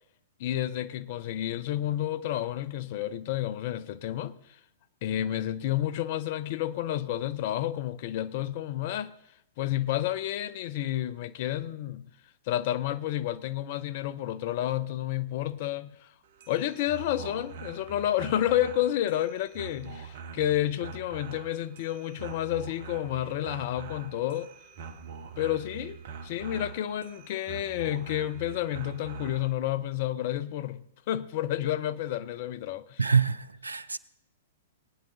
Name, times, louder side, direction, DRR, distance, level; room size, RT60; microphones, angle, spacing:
voice 1, 0.4-4.4 5.0-9.1 9.6-12.1 12.5-16.1 16.5-24.5 25.4-33.1, left 12 dB, 50° left, 0.6 m, -30 dB
sound 1, 16.2-29.5, right 6 dB, 55° right, 1.2 m, -44 dB
voice 2, 33.0-34.0, right 5 dB, 85° right, 0.5 m, -25 dB
20.5 x 9.1 x 3.9 m
figure-of-eight pair, 110°, 0 cm